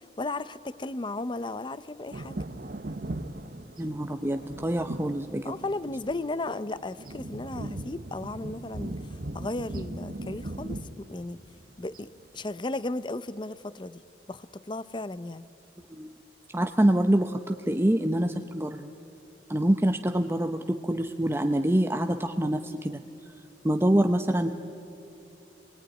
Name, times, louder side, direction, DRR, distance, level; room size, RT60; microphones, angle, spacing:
voice 1, 0.2-2.4 5.4-11.4 11.8-14.0 14.3-15.5 23.9-24.1, left 2 dB, 25° left, 16 dB, 0.6 m, -35 dB
sound 1, 2.1-12.0 12.5-12.6, right 1 dB, 50° right, 0.9 m, -39 dB
voice 2, 3.8-5.4 15.9-16.1 16.5-18.9 19.5-22.9 23.6-24.5, right 1 dB, 15° right, 6 dB, 0.7 m, -25 dB
27.0 x 21.0 x 9.8 m, 3.0 s
head